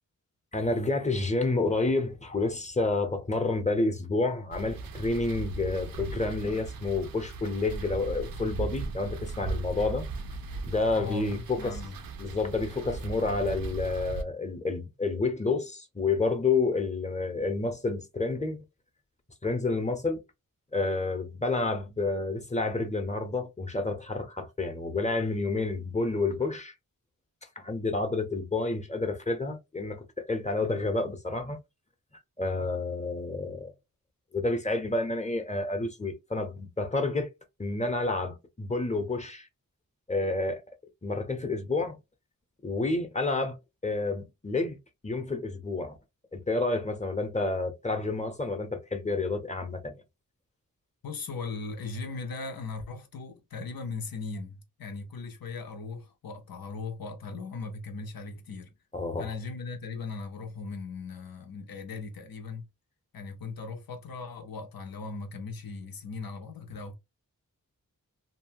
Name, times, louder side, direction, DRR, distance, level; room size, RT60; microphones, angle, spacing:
voice 1, 0.5-10.1 10.6-11.8 12.2-18.7 19.4-20.2 20.7-26.7 27.6-31.6 32.4-33.7 34.3-37.3 37.6-39.5 40.1-40.6 41.0-42.0 42.6-46.0 46.3-49.9 58.9-59.3, left 3 dB, 20° left, 0.7 m, -29 dB
sound 1, 4.5-14.2, right 4 dB, 85° right, 0.5 m, -38 dB
voice 2, 10.9-12.0 51.0-58.7 59.2-62.7 63.1-67.0, left 4 dB, 85° left, 0.7 m, -38 dB
2.7 x 2.3 x 2.7 m
wide cardioid pair, 55°, 34 cm